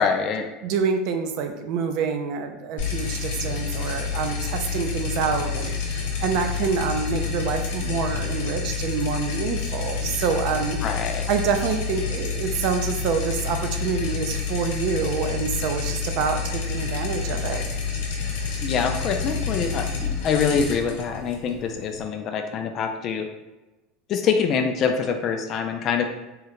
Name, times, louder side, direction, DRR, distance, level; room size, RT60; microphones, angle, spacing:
voice 1, 0.0-0.5 10.8-11.3 18.6-19.9 20.2-23.3 24.1-26.0, left 6 dB, 35° left, 5 dB, 0.3 m, -24 dB
voice 2, 0.6-10.8 11.3-17.6, right 6 dB, 50° right, 6 dB, 0.3 m, -27 dB
sound 1, 2.8-22.1, left 5 dB, 75° left, 0.8 m, -29 dB
3.6 x 2.1 x 2.9 m, 1.1 s
supercardioid pair, 155°, 0 cm